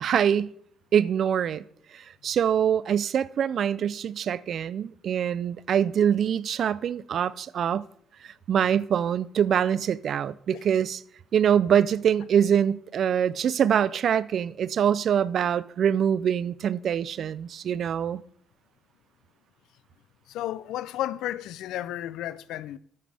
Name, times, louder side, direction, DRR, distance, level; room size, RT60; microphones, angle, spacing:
voice 1, 0.0-0.5 0.9-1.6 1.9-7.9 8.2-11.0 11.3-18.2, right 8 dB, 60° right, 0.4 m, -24 dB
voice 2, 20.3-22.8, left 13 dB, 90° left, 0.3 m, -33 dB
10.5 x 8.7 x 3.4 m
cardioid pair, 90°, 0 cm